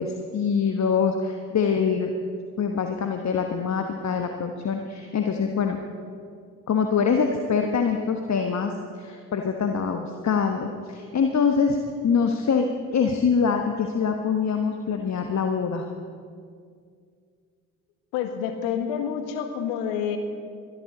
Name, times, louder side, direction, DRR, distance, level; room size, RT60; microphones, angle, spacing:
voice 1, 0.0-2.1 2.6-5.8 6.7-8.7 9.0-11.8 12.0-15.9, left 6 dB, 40° left, 4 dB, 1.3 m, -24 dB
voice 2, 18.1-20.2, left 8 dB, 70° left, 7 dB, 1.6 m, -28 dB
22.5 x 13.0 x 3.9 m, 2.2 s
figure-of-eight pair, 45°, 44 cm